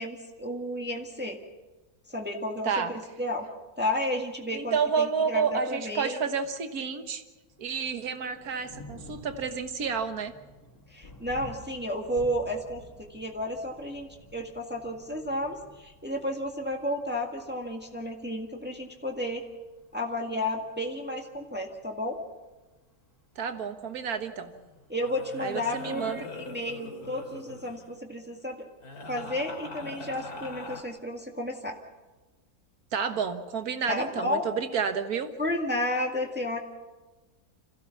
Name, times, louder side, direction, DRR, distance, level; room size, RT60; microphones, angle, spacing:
voice 1, 0.0-1.4 2.1-2.8 3.2-3.5 3.8-6.2 10.9-12.8 13.1-19.4 19.9-22.2 24.9-28.6 29.1-31.8 33.9-34.5 35.4-36.6, left 1 dB, 5° right, 1 dB, 1.8 m, -32 dB
voice 2, 4.5-7.2 7.6-10.3 23.4-24.5 25.4-26.2 32.9-35.3, right 6 dB, 70° right, 8 dB, 1.8 m, -30 dB
Thunder, 7.5-25.5, left 1 dB, 50° left, 3.8 m, -52 dB
sound 1, 24.3-24.6 25.0-27.9 28.8-30.8, left 2 dB, 80° left, 2.9 m, -42 dB
26.0 x 15.5 x 7.1 m, 1.2 s
omnidirectional pair, 1.6 m